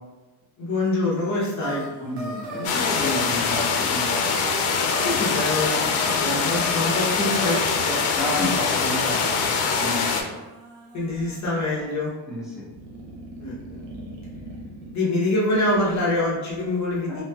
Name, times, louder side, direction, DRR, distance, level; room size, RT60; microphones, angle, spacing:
voice 1, 0.6-1.8 5.0-8.0 8.4-8.5 10.9-12.1 13.4-13.8 14.9-17.2, left 2 dB, 35° left, -6 dB, 0.9 m, -25 dB
sound 1, 1.5-11.4 12.6-14.9, right 1 dB, 85° right, 0.8 m, -37 dB
voice 2, 2.0-4.3 8.1-9.5 9.8-10.3 12.3-12.7 17.1-17.2, left 1 dB, ahead, -7 dB, 0.5 m, -31 dB
sound 2, 2.6-10.2, left 5 dB, 85° left, 0.6 m, -23 dB
3.1 x 2.7 x 2.3 m, 1.2 s
cardioid pair, 155°, 49 cm